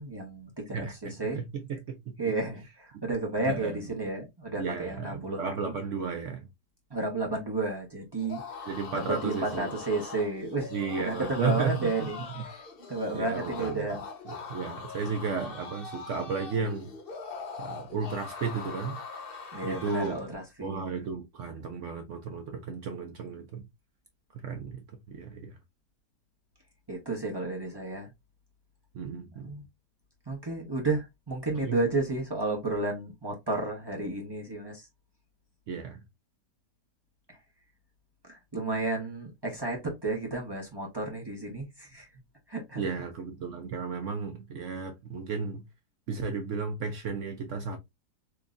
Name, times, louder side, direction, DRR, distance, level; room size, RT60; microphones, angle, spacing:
voice 1, 0.0-1.4 2.2-5.7 6.9-8.4 8.9-10.7 11.1-12.2 12.5-12.6 12.9-14.0 19.5-20.8 26.9-28.1 29.4-29.6 30.3-34.9 37.3-37.4 38.3-42.1 42.5-42.9, right 2 dB, 25° right, 0.5 m, -32 dB
voice 2, 0.7-2.1 3.5-3.8 4.6-6.5 8.7-9.7 10.7-12.4 13.1-13.9 14.3-16.9 17.6-19.0 19.6-20.2 20.6-23.6 24.3-25.6 28.9-29.5 31.6-31.8 35.7-36.0 42.8-45.6 46.1-47.8, right 5 dB, 65° right, 0.7 m, -34 dB
sound 1, 8.2-20.3, left 4 dB, 45° left, 0.8 m, -42 dB
3.6 x 3.0 x 2.4 m
omnidirectional pair, 1.8 m